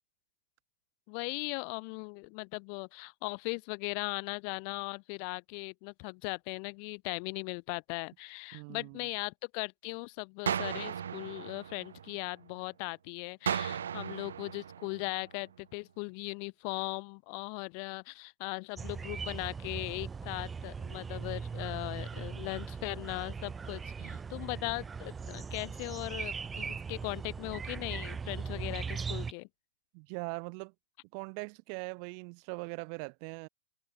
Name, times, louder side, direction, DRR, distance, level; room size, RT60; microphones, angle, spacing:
voice 1, 1.1-29.5, left 40 dB or more, 45° left, 2.1 m, -39 dB
voice 2, 8.5-9.1 24.0-24.2 29.9-30.7 31.1-33.5, right 40 dB or more, 45° right, 1.7 m, -41 dB
sound 1, 10.5-12.5 13.5-15.5, right 8 dB, 85° right, 0.6 m, -36 dB
sound 2, 18.8-29.3, right 5 dB, 15° right, 1.3 m, -39 dB
hypercardioid pair, 135°, 0 cm